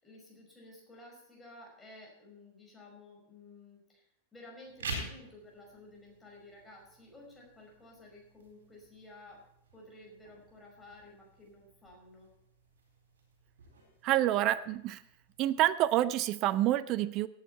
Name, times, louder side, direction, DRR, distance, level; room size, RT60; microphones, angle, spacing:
voice 1, 0.0-12.3, left 2 dB, 10° left, -1 dB, 5.2 m, -54 dB
sound 1, 4.6-15.6, right 2 dB, 60° right, 4.3 m, -48 dB
voice 2, 14.0-15.0 15.4-17.3, right 13 dB, 40° right, 17 dB, 0.4 m, -28 dB
17.5 x 8.8 x 4.4 m, 0.77 s
figure-of-eight pair, 90°, 0 cm